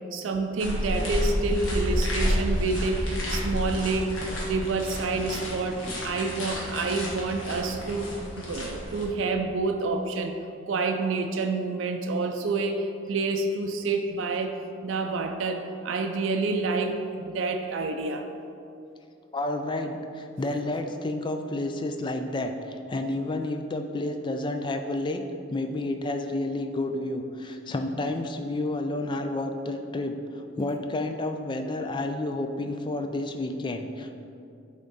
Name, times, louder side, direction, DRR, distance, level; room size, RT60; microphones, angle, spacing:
voice 1, 0.1-10.4 10.7-14.5 14.8-18.3, right 3 dB, 75° right, 4 dB, 0.4 m, -28 dB
sound 1, 0.6-9.0, equal, 90° left, 1.5 m, -30 dB
voice 2, 19.3-25.2 25.5-34.2, left 2 dB, 25° left, 6 dB, 0.3 m, -30 dB
7.9 x 3.6 x 4.0 m, 2.6 s
head